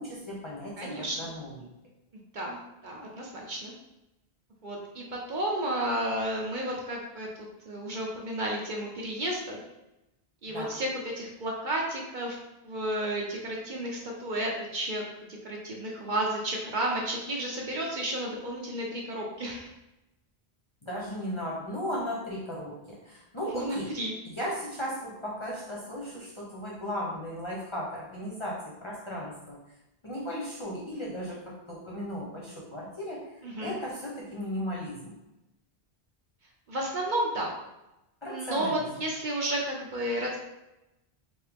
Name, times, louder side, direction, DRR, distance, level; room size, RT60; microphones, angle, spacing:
voice 1, 0.0-1.7 10.5-10.8 20.8-24.0 24.3-29.6 30.0-35.1 38.2-39.0, equal, 30° left, -4 dB, 0.7 m, -36 dB
voice 2, 0.8-1.3 2.3-3.7 4.6-9.6 10.4-12.4 12.6-15.0 15.4-19.7 23.6-24.1 33.4-33.8 36.7-37.5 38.2-40.4, right 1 dB, 55° right, -2 dB, 0.7 m, -32 dB
3.5 x 2.8 x 3.4 m, 0.94 s
omnidirectional pair, 1.1 m